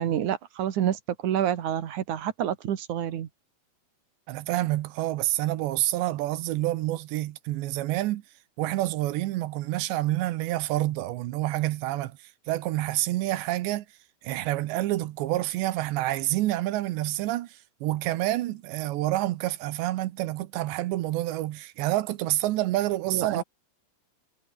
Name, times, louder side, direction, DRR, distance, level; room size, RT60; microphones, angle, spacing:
voice 1, 0.0-3.3 23.1-23.4, right 10 dB, 60° right, 2.4 m, -28 dB
voice 2, 4.3-8.2 8.6-13.9 14.2-23.4, right 16 dB, 80° right, 3.2 m, -28 dB
omnidirectional pair, 5.2 m